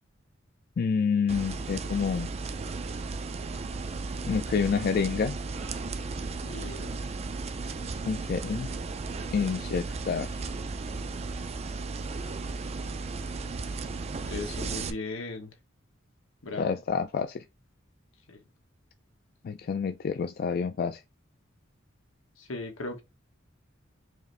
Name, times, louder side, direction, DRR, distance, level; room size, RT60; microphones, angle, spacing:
voice 1, 0.8-2.3 4.3-5.4 8.1-8.7 9.3-10.3 16.6-17.4 19.4-21.0, left 6 dB, 50° left, 0.3 m, -28 dB
sound 1, 1.3-14.9, right 3 dB, 30° right, 0.4 m, -35 dB
voice 2, 6.5-7.0 14.3-15.5 16.4-16.8 18.3-18.4 22.4-23.0, left 3 dB, 90° left, 1.2 m, -37 dB
4.8 x 2.6 x 3.2 m
head